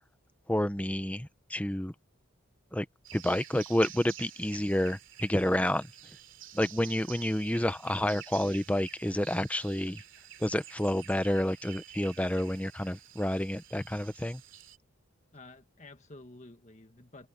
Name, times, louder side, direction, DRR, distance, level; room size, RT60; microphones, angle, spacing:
voice 1, 0.5-1.9 2.7-2.8 3.1-5.9 6.5-10.0 10.4-14.4, left 1 dB, 5° left, 0.8 m, -29 dB
sound 1, 3.0-14.8, right 12 dB, 60° right, 3.1 m, -50 dB
voice 2, 15.3-17.3, left 2 dB, 35° left, 1.7 m, -51 dB
head